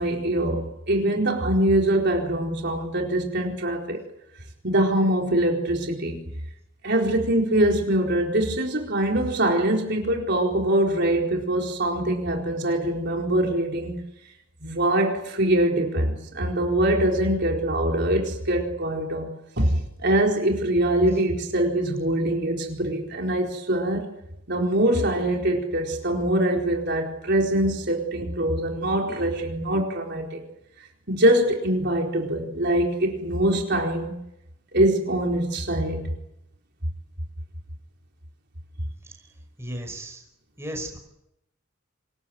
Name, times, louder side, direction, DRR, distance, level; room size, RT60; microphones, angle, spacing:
voice 1, 0.0-4.0 4.6-6.2 6.8-14.0 14.6-24.0 24.5-30.4 31.1-34.2 34.7-36.1, right 1 dB, 55° right, 1 dB, 4.4 m, -23 dB
voice 2, 39.6-40.2 40.6-41.0, equal, 15° right, 3 dB, 5.4 m, -34 dB
26.5 x 20.5 x 9.4 m, 0.86 s
head